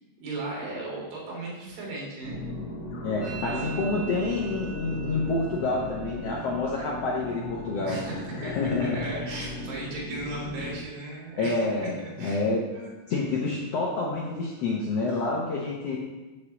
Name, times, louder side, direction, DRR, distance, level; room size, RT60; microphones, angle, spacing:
voice 1, 0.2-2.4 3.2-3.7 7.9-8.2 8.4-8.6 8.9-11.6 11.8-12.4 12.7-12.9, right 2 dB, 80° right, -3 dB, 3.9 m, -36 dB
sound 1, 2.2-10.8, left 1 dB, 55° left, 1.9 m, -37 dB
voice 2, 3.0-9.0 11.4-12.6 13.1-16.0, left 3 dB, 70° left, -2 dB, 1.5 m, -28 dB
Musical instrument, 3.2-10.9 11.1-11.7 11.9-12.5 12.8-14.8, right 7 dB, ahead, 2.4 m, -48 dB
7.1 x 5.0 x 7.2 m, 1.2 s
omnidirectional pair, 4.0 m